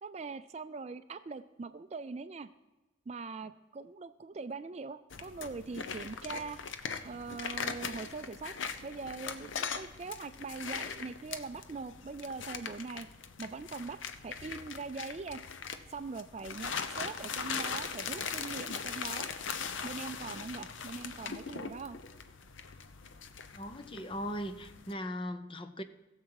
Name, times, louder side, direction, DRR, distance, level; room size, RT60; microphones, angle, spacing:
voice 1, 0.0-2.5 3.1-6.6 7.0-8.5 8.8-13.1 13.4-14.0 14.2-15.4 15.9-19.3 19.8-22.0, right 4 dB, 35° right, 12 dB, 0.3 m, -42 dB
sound 1, 5.1-24.9, left 6 dB, 80° left, 0.7 m, -40 dB
voice 2, 23.5-25.8, equal, 25° left, 9 dB, 0.6 m, -39 dB
16.0 x 7.4 x 4.7 m, 1.1 s
head